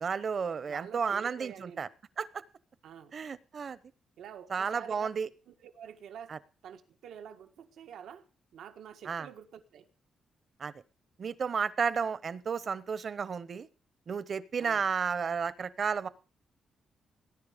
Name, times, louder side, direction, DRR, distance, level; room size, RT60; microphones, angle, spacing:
voice 1, 0.0-1.9 2.2-2.3 3.1-3.8 4.5-5.3 6.3-6.4 9.0-9.3 10.6-10.7 11.2-13.7 14.1-16.1, right 6 dB, 40° right, 17 dB, 0.9 m, -32 dB
voice 2, 0.6-1.9 2.8-3.1 4.2-5.1 5.5-6.3 6.6-8.2 8.5-9.9 14.6-14.9, right 8 dB, 90° right, 7 dB, 1.5 m, -48 dB
19.0 x 10.5 x 5.1 m, 0.35 s
wide cardioid pair, 150°, 0 cm